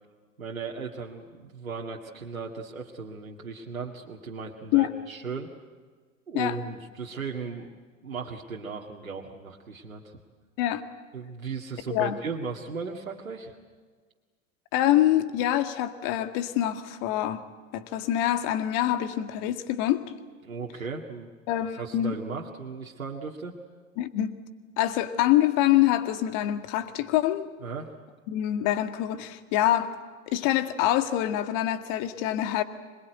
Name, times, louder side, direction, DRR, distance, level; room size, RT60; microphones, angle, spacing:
voice 1, 0.4-5.5 6.3-7.7 8.0-10.2 11.1-13.5 20.4-21.3 21.7-23.6 27.6-27.9, right 5 dB, 85° right, -1 dB, 2.1 m, -36 dB
voice 2, 14.7-17.4 17.7-20.0 21.5-22.2 24.0-24.3 24.8-27.5 28.3-29.9 30.3-32.6, left 13 dB, 50° left, 9 dB, 2.0 m, -25 dB
26.5 x 21.0 x 9.2 m, 1.5 s
figure-of-eight pair, 85°, 40 cm